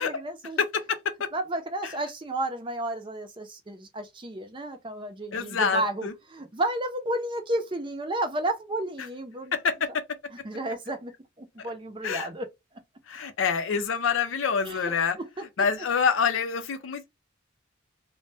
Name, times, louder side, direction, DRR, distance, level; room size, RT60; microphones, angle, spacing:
voice 1, 0.0-0.6 1.3-9.6 10.4-11.1 11.4-12.5 14.6-14.9, right 1 dB, 25° right, 0.5 m, -32 dB
voice 2, 0.6-1.3 1.8-2.0 5.3-6.1 9.5-10.0 12.0-12.3 13.1-17.1, left 6 dB, 80° left, 0.5 m, -27 dB
2.5 x 2.1 x 3.3 m
head